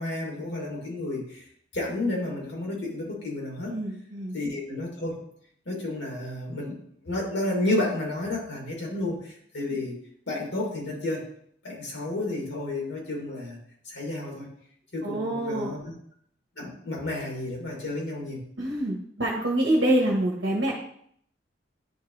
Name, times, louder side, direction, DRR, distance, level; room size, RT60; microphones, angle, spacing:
voice 1, 0.0-1.4 1.7-3.7 4.3-5.2 5.7-6.8 7.0-9.9 10.3-11.3 11.6-13.6 13.8-14.5 14.9-15.9 16.6-18.4, left 2 dB, 80° left, -2 dB, 2.6 m, -31 dB
voice 2, 3.7-4.3 15.0-15.7 18.6-20.7, right 1 dB, 65° right, -2 dB, 1.3 m, -26 dB
9.9 x 3.8 x 3.3 m, 0.65 s
head